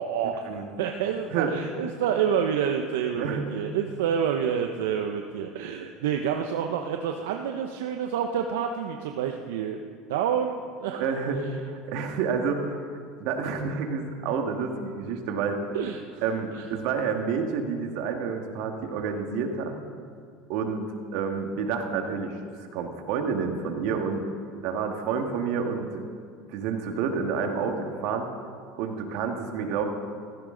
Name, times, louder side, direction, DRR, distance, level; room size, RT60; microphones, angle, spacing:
voice 1, 0.0-9.8 10.1-11.1 15.7-16.2 16.5-16.6, right 8 dB, 85° right, 4 dB, 0.8 m, -28 dB
voice 2, 1.3-1.7 3.1-3.5 10.9-12.8 13.2-15.6 16.2-19.7 20.5-20.9 21.1-22.4 22.7-24.2 24.6-26.1 26.5-28.3 28.8-29.9, right 5 dB, 70° right, 4 dB, 1.8 m, -29 dB
16.0 x 15.0 x 3.9 m, 2.1 s
supercardioid pair, 110°, 0 cm